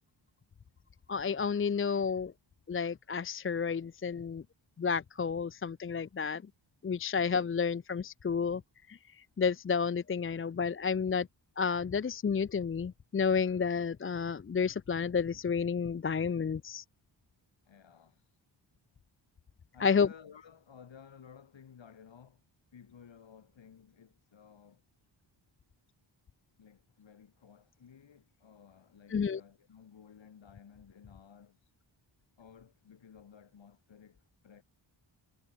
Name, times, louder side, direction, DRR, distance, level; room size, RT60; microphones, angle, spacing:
voice 1, 1.1-2.3 2.7-4.4 4.8-6.4 6.8-8.6 8.9-9.0 9.4-11.3 11.6-16.8 19.8-20.1 29.1-29.4, left 6 dB, 30° left, 0.5 m, -31 dB
voice 2, 17.6-18.2 19.7-22.4 22.7-24.8 26.6-31.6 32.4-34.6, left 7 dB, 70° left, 5.5 m, -56 dB
wide cardioid pair, 170°, 47 cm